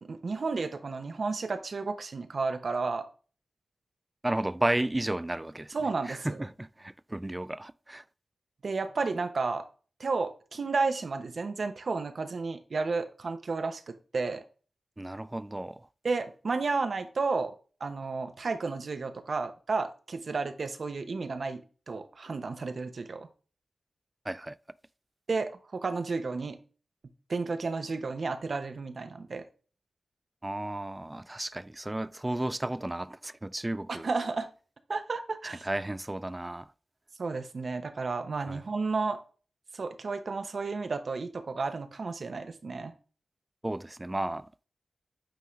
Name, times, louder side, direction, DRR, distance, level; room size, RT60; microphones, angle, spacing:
voice 1, 0.0-3.1 5.7-6.4 8.6-9.6 10.0-14.4 16.0-17.5 17.8-21.6 21.9-23.3 25.3-26.6 27.3-29.4 33.9-34.5 34.9-35.6 37.2-39.2 39.7-42.9, right 4 dB, 65° right, 0.9 m, -32 dB
voice 2, 4.2-5.7 6.1-8.0 15.0-15.8 24.3-24.5 30.4-34.1 35.6-36.7 38.5-38.6 43.6-44.5, right 1 dB, 20° right, 0.3 m, -33 dB
9.0 x 3.8 x 3.1 m
cardioid pair, 65°, 0 cm